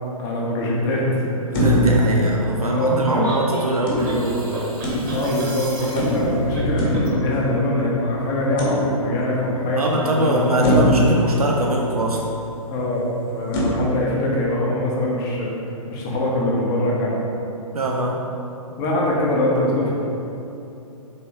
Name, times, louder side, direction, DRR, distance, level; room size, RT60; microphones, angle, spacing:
voice 1, 0.2-1.3 2.5-3.4 5.1-10.8 12.7-15.5 15.9-17.2 18.8-19.9, left 1 dB, 20° left, -4 dB, 0.5 m, -23 dB
sound 1, 1.5-3.2 3.9-5.5 6.0-7.9 8.6-9.4 9.9-10.0 10.6-12.3 13.5-13.6, equal, 40° left, 0.8 m, -23 dB
voice 2, 1.5-4.6 9.8-12.2 17.7-18.2, right 1 dB, 85° right, -1 dB, 0.4 m, -22 dB
sound 2, 3.2-7.2, right 1 dB, 35° right, 0.7 m, -30 dB
3.6 x 3.3 x 2.8 m, 2.8 s
figure-of-eight pair, 120°, 19 cm